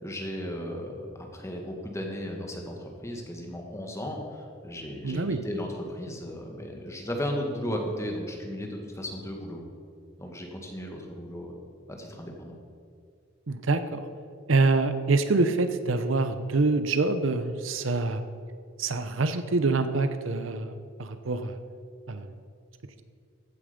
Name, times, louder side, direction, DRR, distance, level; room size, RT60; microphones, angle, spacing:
voice 1, 0.0-9.6 10.2-11.5 11.9-12.6, equal, 15° left, 1 dB, 1.8 m, -35 dB
voice 2, 5.0-5.4 13.5-14.1 14.5-18.2 18.8-21.6 22.1-22.3, right 3 dB, 75° right, 10 dB, 0.8 m, -26 dB
15.0 x 8.6 x 5.2 m, 2.2 s
head